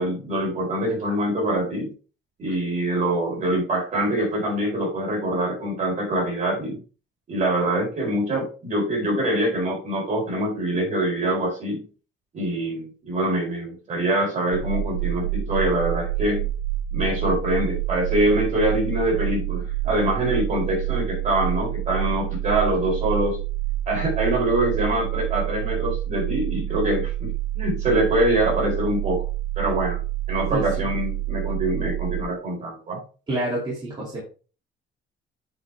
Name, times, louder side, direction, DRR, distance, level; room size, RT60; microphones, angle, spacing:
voice 1, 0.0-1.9 2.4-6.8 7.3-11.8 12.3-16.4 16.9-23.4 23.9-29.2 29.6-30.0 30.3-33.0, right 1 dB, 40° right, -1 dB, 4.4 m, -24 dB
sound 1, 14.5-32.2, right 14 dB, 80° right, 1.1 m, -28 dB
voice 2, 30.5-30.9 33.3-34.2, right 1 dB, 25° right, -6 dB, 2.6 m, -28 dB
8.0 x 5.7 x 3.4 m, 0.36 s
cardioid pair, 165°, 20 cm